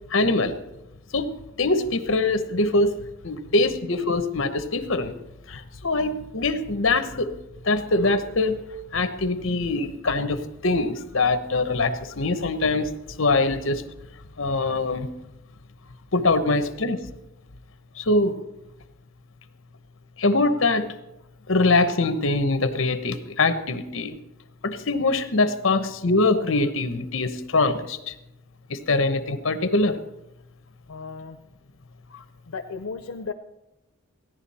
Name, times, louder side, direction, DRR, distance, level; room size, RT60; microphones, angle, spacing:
voice 1, 0.1-0.6 1.1-1.3 1.6-2.9 3.2-5.1 5.5-7.3 7.6-8.6 8.9-12.9 13.2-13.8 14.4-15.1 16.1-17.0 18.0-18.4 20.2-20.9 21.5-24.2 24.6-28.1 28.7-30.0, left 2 dB, 70° left, 10 dB, 1.0 m, -23 dB
voice 2, 30.9-31.4 32.4-33.3, left 4 dB, 85° left, 5 dB, 0.6 m, -35 dB
16.5 x 11.0 x 4.3 m, 0.94 s
head